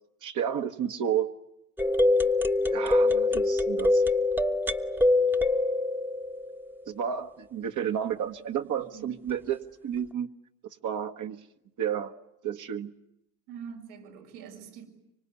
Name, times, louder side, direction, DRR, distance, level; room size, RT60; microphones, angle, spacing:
voice 1, 0.2-1.3 2.7-4.0 6.9-10.3 10.8-11.4 11.8-12.1 12.4-12.9, right 9 dB, 40° right, 6 dB, 1.4 m, -31 dB
sound 1, 1.8-6.9, left 2 dB, 5° right, 1.2 m, -24 dB
voice 2, 8.6-9.2 13.5-14.9, right 7 dB, 85° right, 2 dB, 6.7 m, -44 dB
25.0 x 24.5 x 9.7 m, 0.83 s
supercardioid pair, 100°, 46 cm